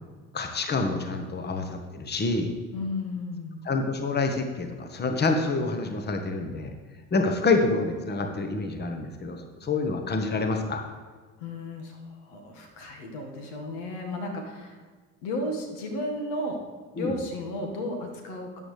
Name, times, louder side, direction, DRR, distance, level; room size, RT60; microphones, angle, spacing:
voice 1, 0.3-2.5 3.6-6.7 7.1-10.8 17.0-17.1, left 3 dB, 25° left, 5 dB, 1.3 m, -27 dB
voice 2, 2.7-3.6 11.4-14.8 15.2-16.6 16.9-18.5, left 1 dB, 65° left, 3 dB, 1.8 m, -34 dB
12.5 x 8.9 x 3.3 m, 1.4 s
figure-of-eight pair, 50°, 38 cm